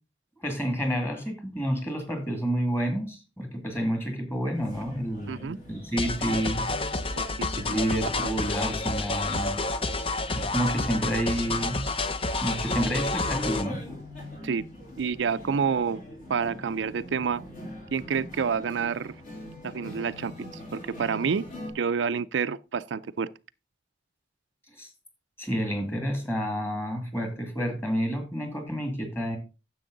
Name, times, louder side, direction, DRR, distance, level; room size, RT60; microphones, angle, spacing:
voice 1, 0.4-6.6 7.6-9.6 10.3-11.8 12.4-14.0 24.8-24.9 25.4-29.4, equal, 15° left, 2.3 m, -29 dB
sound 1, 4.5-21.7, equal, 50° left, 3.5 m, -43 dB
voice 2, 5.3-5.6 7.2-7.8 8.2-8.3 14.4-14.6 15.0-16.0 16.3-17.4 17.9-19.1 19.6-20.5 20.7-21.5 21.7-23.3, right 6 dB, 75° right, 0.4 m, -28 dB
sound 2, 6.0-13.7, left 3 dB, 30° left, 0.6 m, -29 dB
10.0 x 7.4 x 3.9 m
head